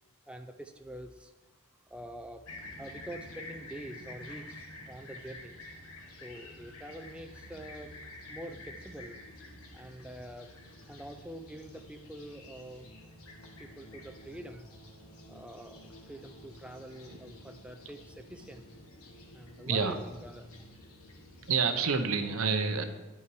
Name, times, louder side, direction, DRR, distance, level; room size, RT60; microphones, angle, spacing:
voice 1, 0.3-1.3 1.9-2.5 2.7-5.6 6.2-7.9 8.3-9.2 9.7-10.5 10.9-12.9 13.6-14.7 15.3-18.6 19.3-20.5, right 1 dB, 5° right, 5 dB, 0.4 m, -46 dB
Fixed-wing aircraft airplane, 2.5-21.8, left 1 dB, 85° left, 1.3 m, -49 dB
voice 2, 21.5-22.8, right 5 dB, 80° right, 8 dB, 0.7 m, -28 dB
10.0 x 5.5 x 4.8 m, 1.2 s
head